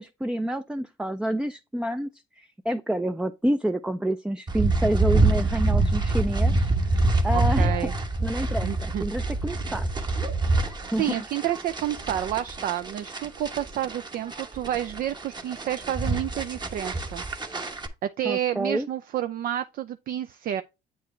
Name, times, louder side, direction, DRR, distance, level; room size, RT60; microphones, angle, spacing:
voice 1, 0.0-2.1 2.4-6.7 7.2-7.9 8.2-9.9 10.9-11.2 18.2-18.9, right 1 dB, 5° right, 0.4 m, -28 dB
sound 1, 4.5-17.9, right 2 dB, 25° right, 1.1 m, -26 dB
voice 2, 7.3-7.9 8.6-9.0 11.0-17.2 17.5-20.6, right 11 dB, 60° right, 0.5 m, -30 dB
8.1 x 4.6 x 3.1 m
cardioid pair, 110°, 17 cm